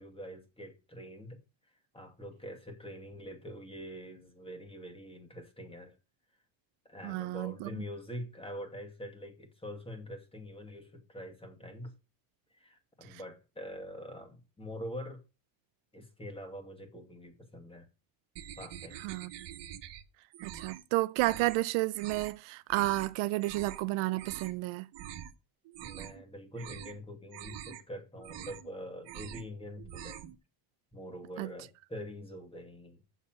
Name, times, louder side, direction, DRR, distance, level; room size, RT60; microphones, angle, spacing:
voice 1, 0.0-6.0 6.8-12.0 12.5-15.2 15.9-17.9 18.6-19.0 25.8-30.2 30.9-33.0, equal, 10° left, 2.2 m, -45 dB
voice 2, 7.0-7.7 13.1-13.2 19.0-19.3 20.4-24.9 31.4-31.5, right 19 dB, 70° right, 0.6 m, -31 dB
sound 1, 18.4-20.0 20.3-20.8 21.2-21.6 21.9-22.3 22.7-23.1 23.4-23.8 24.1-24.6 24.9-25.3 25.6-26.2 26.5-27.0 27.3-27.8 28.2-28.7 29.0-29.5 29.8-30.4, right 11 dB, 55° right, 1.3 m, -45 dB
7.2 x 6.9 x 7.5 m
cardioid pair, 130°, 50 cm